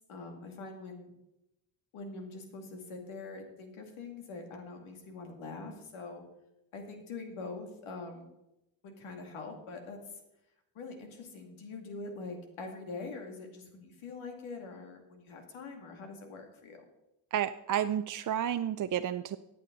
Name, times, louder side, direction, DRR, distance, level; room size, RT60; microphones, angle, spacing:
voice 1, 0.1-1.1 1.9-6.2 6.7-8.3 8.8-10.0 10.7-16.9, left 3 dB, 80° left, 4 dB, 2.4 m, -44 dB
voice 2, 17.3-19.4, right 10 dB, 40° right, 10 dB, 0.5 m, -31 dB
15.0 x 8.6 x 3.9 m, 0.89 s
cardioid pair, 90°, 48 cm